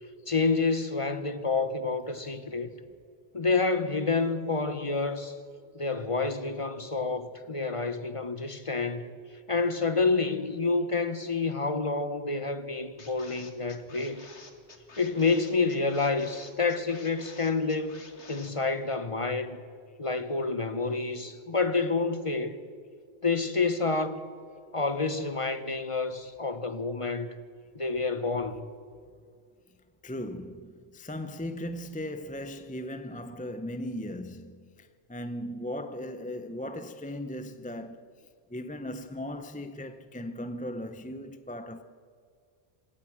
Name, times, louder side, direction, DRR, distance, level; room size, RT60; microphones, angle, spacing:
voice 1, 0.3-2.7 3.3-5.4 5.7-9.1 9.5-14.3 15.0-18.0 18.3-19.6 20.0-22.6 23.2-24.2 24.7-27.3 27.7-28.6, left 4 dB, 30° left, 1.2 m, -28 dB
sound 1, 13.0-18.5, left 3 dB, 85° left, 2.1 m, -50 dB
voice 2, 30.0-41.8, left 1 dB, 10° left, 0.6 m, -38 dB
27.5 x 16.5 x 6.2 m
omnidirectional pair, 1.1 m